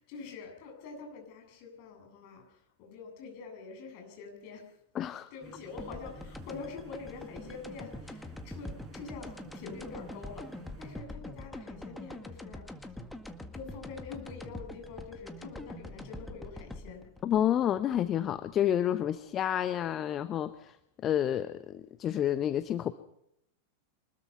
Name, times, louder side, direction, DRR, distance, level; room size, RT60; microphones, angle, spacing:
voice 1, 0.0-4.7 5.3-12.9 13.5-17.1, left 5 dB, 45° left, 2 dB, 8.0 m, -45 dB
voice 2, 4.9-5.3 17.2-20.8 21.0-22.9, left 10 dB, 30° left, 12 dB, 0.9 m, -29 dB
sound 1, 5.4-11.0, right 2 dB, 20° right, 6.7 m, -52 dB
sound 2, 5.8-18.6, left 1 dB, 5° left, 1.8 m, -44 dB
25.0 x 20.5 x 5.8 m, 0.80 s
figure-of-eight pair, 90°, 0 cm